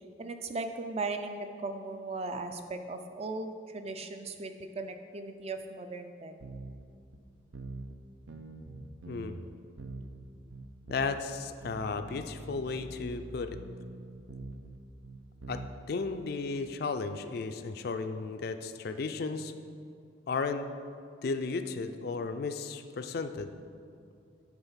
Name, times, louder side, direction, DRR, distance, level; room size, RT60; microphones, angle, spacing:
voice 1, 0.2-6.3, right 3 dB, 30° right, 7 dB, 0.4 m, -37 dB
sound 1, 6.4-6.9 7.1-7.2 7.5-8.0 8.3-9.5 9.8-11.3 11.6-16.2, right 2 dB, 90° right, 0.6 m, -44 dB
voice 2, 10.9-13.6 15.5-15.6 15.9-19.5 20.3-20.7 21.2-23.5, left 4 dB, 50° left, 8 dB, 0.3 m, -34 dB
8.9 x 3.9 x 5.6 m, 2.4 s
head